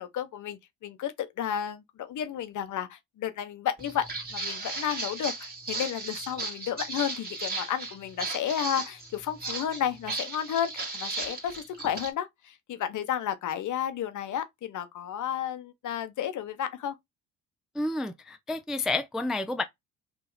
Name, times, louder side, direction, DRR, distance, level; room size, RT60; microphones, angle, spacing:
voice 1, 0.0-17.0, left 9 dB, 50° left, 0.8 m, -32 dB
Walk footsteps, 3.8-12.1, right 3 dB, 25° right, 1.7 m, -36 dB
voice 2, 17.7-19.6, left 2 dB, ahead, 0.3 m, -30 dB
2.8 x 2.8 x 3.9 m
supercardioid pair, 70°, 38 cm